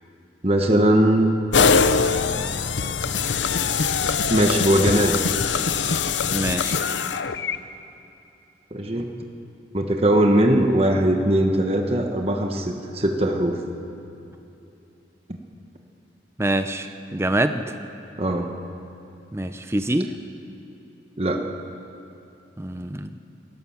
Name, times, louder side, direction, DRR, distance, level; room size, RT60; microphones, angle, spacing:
voice 1, 0.4-1.3 4.3-5.2 8.7-9.1 9.7-13.6 18.2-18.5 21.2-21.4, right 1 dB, 35° right, 3 dB, 1.2 m, -20 dB
sound 1, 1.5-7.6, left 5 dB, 85° left, 0.7 m, -22 dB
voice 2, 6.3-6.8 16.4-17.8 19.3-20.1 22.6-23.1, right 1 dB, 15° right, 8 dB, 0.7 m, -25 dB
27.0 x 17.0 x 7.2 m, 2.9 s
head